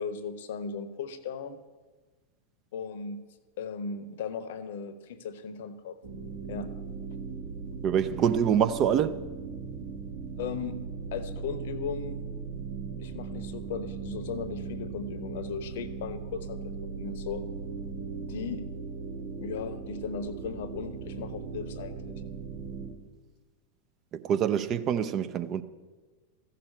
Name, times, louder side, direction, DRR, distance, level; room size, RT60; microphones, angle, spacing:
voice 1, 0.0-1.6 2.7-3.2 3.6-6.0 6.5-6.7 10.4-10.8 11.1-12.2 12.9-17.4 18.2-18.7 19.4-22.2, left 6 dB, 55° left, 0.9 m, -37 dB
sound 1, 6.0-22.9, right 5 dB, 70° right, 2.5 m, -38 dB
voice 2, 7.8-9.2 24.1-25.6, right 8 dB, 35° right, 0.6 m, -25 dB
14.0 x 6.7 x 8.4 m
figure-of-eight pair, 90°, 0 cm